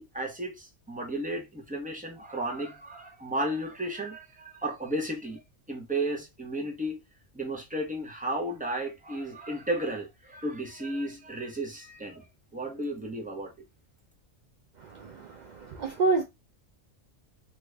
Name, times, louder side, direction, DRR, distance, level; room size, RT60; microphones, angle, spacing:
voice 1, 0.0-5.4 5.7-7.0 7.3-12.3 12.5-13.5, right 1 dB, 10° right, 0.5 m, -33 dB
voice 2, 14.8-16.2, right 3 dB, 75° right, 0.4 m, -29 dB
2.9 x 2.4 x 3.2 m
omnidirectional pair, 1.3 m